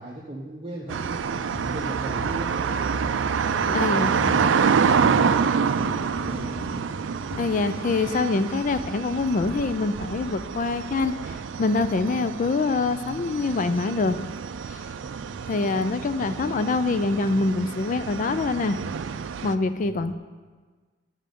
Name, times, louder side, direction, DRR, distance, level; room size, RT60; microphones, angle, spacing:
voice 1, 0.0-3.1 3.7-7.1 15.2-15.5 19.8-20.1, right 1 dB, 30° right, -4 dB, 0.9 m, -38 dB
sound 1, 0.9-19.5, right 6 dB, 85° right, 0.4 m, -27 dB
sound 2, 1.5-7.5, left 1 dB, 70° left, 0.7 m, -41 dB
voice 2, 3.7-4.4 7.4-14.2 14.7-14.8 15.5-18.8 19.4-20.1, left 3 dB, 45° left, 11 dB, 0.4 m, -25 dB
9.7 x 6.4 x 5.2 m, 1.4 s
head